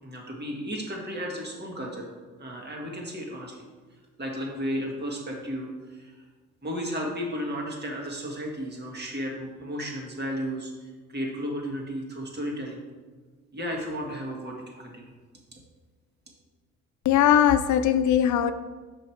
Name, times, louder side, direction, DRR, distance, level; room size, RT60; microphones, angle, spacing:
voice 1, 0.0-2.1 2.4-3.6 4.2-5.7 6.0-6.1 6.6-10.7 11.1-12.8 13.5-15.1, equal, 35° right, 1.8 m, -33 dB
voice 2, 17.0-18.5, left 10 dB, 75° left, 0.6 m, -20 dB
5.7 x 5.2 x 4.5 m
cardioid pair, 90°, 30 cm